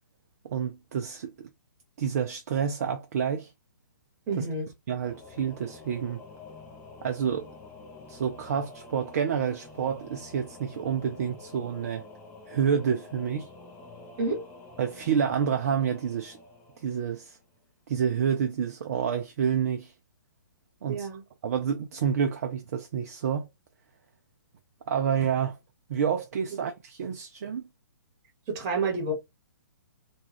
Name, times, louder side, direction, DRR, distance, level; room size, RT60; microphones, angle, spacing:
voice 1, 0.4-1.3 2.0-3.5 4.4-4.5 4.9-6.2 7.0-7.5 8.1-12.0 12.5-13.5 14.8-16.4 16.8-17.4 17.9-19.9 20.8-21.1 21.4-23.5 24.9-25.6 25.9-27.7, right 7 dB, 50° right, 0.4 m, -28 dB
voice 2, 4.3-4.7 14.2-14.4 20.9-21.2 28.5-29.1, right 3 dB, 25° right, 0.9 m, -29 dB
Singing / Musical instrument, 5.0-17.5, left 3 dB, 15° left, 0.5 m, -48 dB
2.3 x 2.3 x 3.1 m
figure-of-eight pair, 125°, 11 cm